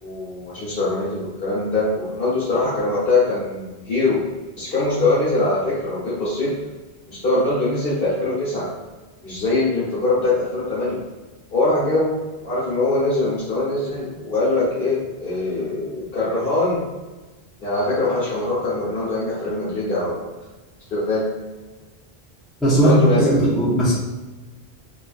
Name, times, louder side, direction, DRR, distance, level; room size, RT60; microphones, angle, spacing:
voice 1, 0.0-4.2 4.6-6.5 7.2-8.7 9.2-11.0 11.5-16.8 17.6-20.3 20.9-21.2 22.7-23.5, left 2 dB, 65° left, -9 dB, 1.2 m, -22 dB
voice 2, 22.6-23.0 23.3-23.9, right 2 dB, ahead, -8 dB, 0.6 m, -17 dB
2.7 x 2.5 x 2.3 m, 1.2 s
omnidirectional pair, 1.0 m